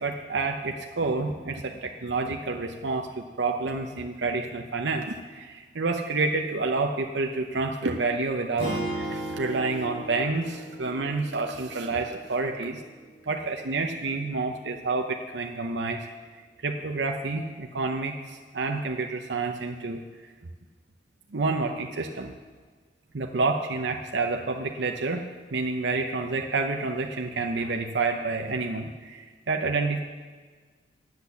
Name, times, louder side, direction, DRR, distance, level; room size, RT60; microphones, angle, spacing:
voice 1, 0.0-12.8 13.3-16.0 16.6-20.3 21.3-22.3 23.1-25.2 25.5-30.0, right 3 dB, 80° right, 3 dB, 0.8 m, -29 dB
sound 1, 8.6-12.7, right 1 dB, 55° left, 2.7 m, -36 dB
10.5 x 8.1 x 7.0 m, 1.4 s
head